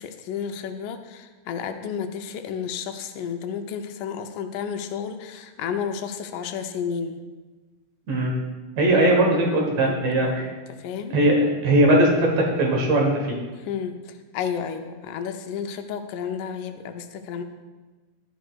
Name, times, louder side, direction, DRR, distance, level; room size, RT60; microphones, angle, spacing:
voice 1, 0.0-7.2 9.8-10.0 10.2-10.4 10.8-11.2 12.2-12.3 13.6-17.4, left 7 dB, 90° left, 7 dB, 2.2 m, -32 dB
voice 2, 8.8-10.5 11.1-13.4, right 1 dB, 65° right, 0 dB, 2.1 m, -19 dB
11.5 x 9.3 x 2.3 m, 1.3 s
omnidirectional pair, 3.6 m